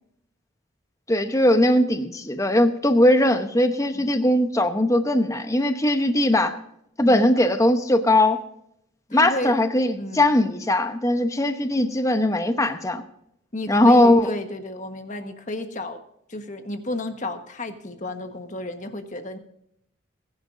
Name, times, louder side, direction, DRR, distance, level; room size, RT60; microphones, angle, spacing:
voice 1, 1.1-6.6 7.0-8.4 9.1-13.0 13.7-14.3, left 1 dB, 15° left, 8 dB, 0.9 m, -20 dB
voice 2, 9.1-9.6 10.0-10.3 13.5-16.0 16.3-19.4, left 2 dB, 40° left, 7 dB, 1.3 m, -32 dB
20.5 x 10.5 x 2.6 m, 0.73 s
head